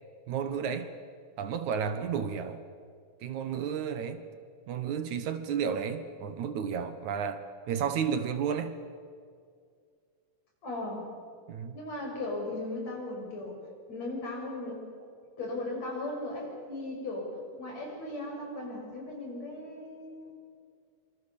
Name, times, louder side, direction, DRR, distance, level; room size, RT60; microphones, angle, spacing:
voice 1, 0.3-0.9 1.4-2.6 3.2-4.2 4.7-8.8 11.5-11.8, right 7 dB, 70° right, 10 dB, 2.5 m, -32 dB
voice 2, 10.6-11.1 11.7-13.6 13.9-14.8 15.4-20.4, left 2 dB, 55° left, 0 dB, 7.3 m, -37 dB
26.0 x 26.0 x 7.2 m, 2.1 s
omnidirectional pair, 3.7 m